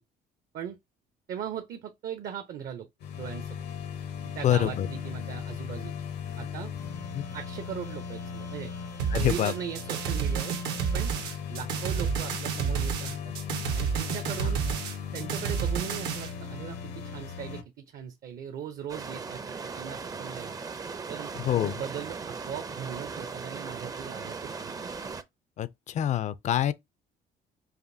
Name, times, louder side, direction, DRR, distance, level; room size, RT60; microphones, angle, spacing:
voice 1, 1.3-2.9 3.2-3.7 4.2-5.9 6.4-6.7 7.3-8.7 9.1-10.5 10.9-11.1 11.5-13.3 13.7-14.6 15.1-20.5 21.1-21.3 21.6-24.7, right 8 dB, 60° right, 0.6 m, -39 dB
sound 1, 3.0-17.6, left 7 dB, 80° left, 0.9 m, -38 dB
voice 2, 4.4-4.9 7.1-7.3 9.1-9.5 14.4-14.5 21.3-21.8 25.6-26.7, left 11 dB, 45° left, 0.4 m, -26 dB
sound 2, 9.0-16.3, right 7 dB, 85° right, 0.9 m, -30 dB
sound 3, 18.9-25.2, right 4 dB, 20° right, 0.4 m, -38 dB
5.0 x 2.6 x 2.6 m
cardioid pair, 110°, 17 cm